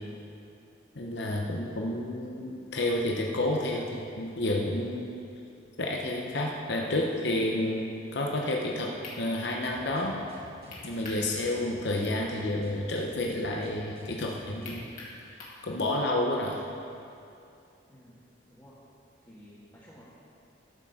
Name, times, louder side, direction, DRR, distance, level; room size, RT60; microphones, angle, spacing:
voice 1, 1.0-5.1 5.8-10.2 10.8-14.9 15.6-16.6, left 1 dB, 65° left, -1 dB, 0.9 m, -30 dB
sound 1, 9.0-9.2 10.7-11.3 11.6-11.7 14.6-15.6, left 2 dB, 40° left, 2.1 m, -43 dB
sound 2, 9.6-14.9, left 1 dB, 50° right, 3.2 m, -50 dB
voice 2, 19.2-20.0, equal, 15° left, -10 dB, 1.7 m, -53 dB
12.5 x 6.0 x 7.1 m, 2.6 s
head